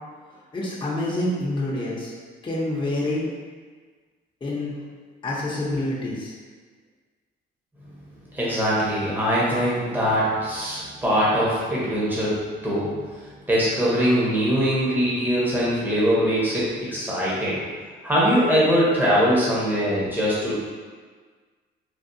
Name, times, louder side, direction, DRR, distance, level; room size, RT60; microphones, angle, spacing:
voice 1, 0.5-2.1 2.4-3.2 4.4-4.7 5.2-6.3, left 1 dB, 25° left, -6 dB, 0.7 m, -27 dB
voice 2, 8.3-13.0 13.5-17.6 18.0-20.6, equal, 10° right, -8 dB, 0.9 m, -22 dB
3.4 x 2.3 x 2.7 m, 1.5 s
cardioid pair, 90°, 20 cm